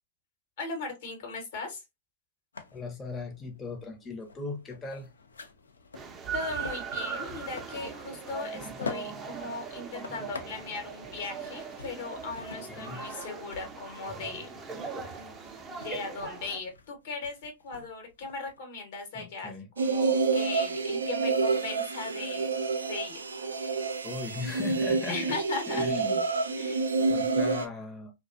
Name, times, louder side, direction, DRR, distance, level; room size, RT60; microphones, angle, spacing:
voice 1, 0.6-1.8 6.3-14.6 15.8-22.5 22.9-23.2 25.1-25.8 26.5-27.0, left 4 dB, 60° left, 1.0 m, -38 dB
sound 1, 2.5-18.6, left 4 dB, 85° left, 0.4 m, -47 dB
voice 2, 2.7-5.1 12.7-13.0 19.1-19.7 24.0-25.4 25.7-26.2 27.1-28.1, left 4 dB, 20° left, 0.7 m, -38 dB
sound 2, 5.9-16.6, right 6 dB, 25° right, 0.5 m, -40 dB
sound 3, 19.8-27.7, right 4 dB, 85° right, 0.3 m, -28 dB
2.4 x 2.1 x 2.4 m
hypercardioid pair, 105°, 0 cm